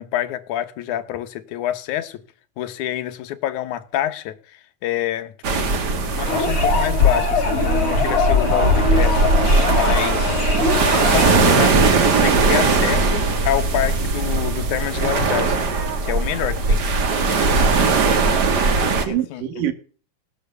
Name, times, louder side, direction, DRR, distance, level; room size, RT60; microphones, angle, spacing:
voice 1, 0.0-2.2 2.6-5.7 6.1-10.6 10.9-15.6 16.0-16.8 19.0-19.6, left 12 dB, 70° left, 2.3 m, -27 dB
sound 1, 5.4-19.0, right 3 dB, 45° right, 1.4 m, -19 dB
sound 2, 6.3-11.6, left 5 dB, 40° left, 3.7 m, -21 dB
voice 2, 17.6-18.3 18.8-19.7, right 10 dB, 75° right, 2.9 m, -27 dB
18.0 x 8.7 x 6.8 m
omnidirectional pair, 3.9 m